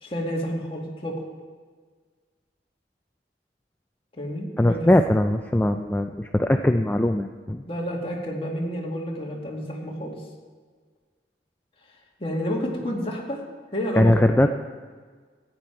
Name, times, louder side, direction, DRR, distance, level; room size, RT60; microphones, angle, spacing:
voice 1, 0.0-1.2 4.1-4.8 7.6-10.2 12.2-13.4 13.7-14.1, equal, 35° left, -1 dB, 2.0 m, -30 dB
voice 2, 4.6-7.6 14.0-14.5, left 1 dB, 10° left, 6 dB, 0.3 m, -20 dB
14.0 x 9.2 x 4.6 m, 1.5 s
head